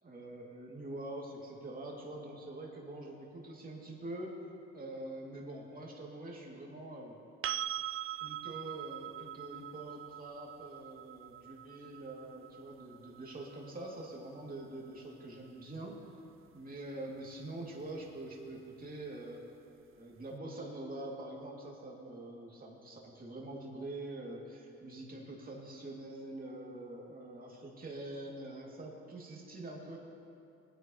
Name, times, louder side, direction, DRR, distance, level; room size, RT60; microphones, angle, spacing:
voice 1, 0.0-4.3 4.7-7.2 8.2-16.0 16.5-19.4 20.0-30.0, right 1 dB, 30° right, -3 dB, 2.6 m, -45 dB
sound 1, 7.4-15.3 18.1-18.2, right 12 dB, 45° right, 0.4 m, -43 dB
20.5 x 9.8 x 3.1 m, 2.6 s
cardioid pair, 90°, 30 cm